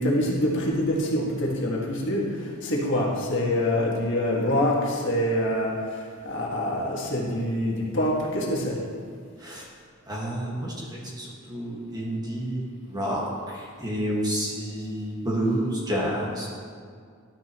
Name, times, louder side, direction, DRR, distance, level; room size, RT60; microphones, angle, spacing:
voice 1, 0.0-8.8, left 1 dB, 60° left, -3 dB, 1.8 m, -25 dB
voice 2, 10.1-16.5, right 1 dB, 20° right, -4 dB, 1.6 m, -29 dB
12.0 x 9.9 x 3.0 m, 2.1 s
head